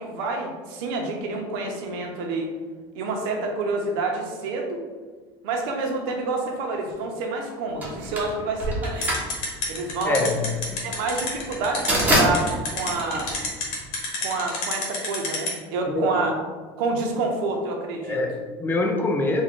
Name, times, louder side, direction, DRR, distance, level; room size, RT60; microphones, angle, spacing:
voice 1, 0.0-2.5 2.9-4.8 5.4-9.1 9.7-10.3 10.8-13.3 14.2-16.3 16.8-18.2, right 3 dB, 80° right, 2 dB, 0.7 m, -28 dB
sound 1, 7.8-14.0, right 1 dB, 15° right, 0.9 m, -26 dB
sound 2, 9.0-15.5, left 4 dB, 70° left, 1.1 m, -28 dB
voice 2, 10.0-10.4 10.7-10.8 15.9-16.1 18.0-19.4, left 2 dB, 15° left, 2 dB, 0.5 m, -24 dB
3.5 x 2.4 x 3.6 m, 1.4 s
supercardioid pair, 125°, 12 cm